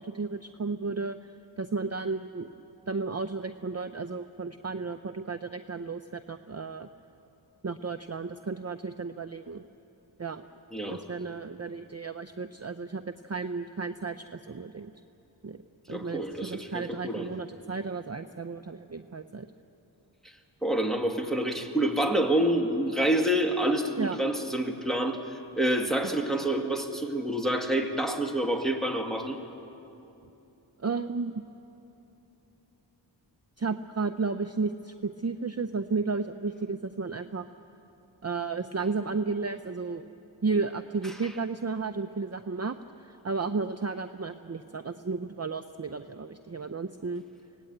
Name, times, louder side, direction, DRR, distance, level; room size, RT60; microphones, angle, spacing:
voice 1, 0.0-2.5 2.9-6.9 7.6-9.6 10.2-10.4 10.9-14.9 15.4-15.6 15.9-19.5 24.0-24.2 30.8-31.4 33.6-37.5 38.2-40.1 40.4-47.2, right 4 dB, 35° right, 9 dB, 0.6 m, -33 dB
voice 2, 10.7-11.0 15.9-17.3 20.6-29.4, right 1 dB, ahead, 2 dB, 2.2 m, -27 dB
24.0 x 18.0 x 9.0 m, 2.9 s
wide cardioid pair, 45°, 46 cm